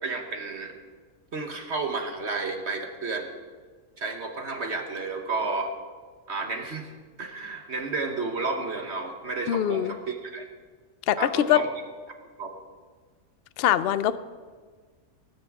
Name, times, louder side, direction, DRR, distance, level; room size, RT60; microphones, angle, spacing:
voice 1, 0.0-0.7 1.3-3.3 4.0-5.7 6.3-6.9 7.2-10.5 11.2-11.7 12.4-12.5, right 3 dB, 50° right, 4 dB, 1.4 m, -31 dB
voice 2, 9.5-9.9 11.1-11.6 13.6-14.2, left 11 dB, 60° left, 14 dB, 0.6 m, -23 dB
19.0 x 15.0 x 3.6 m, 1.5 s
omnidirectional pair, 1.5 m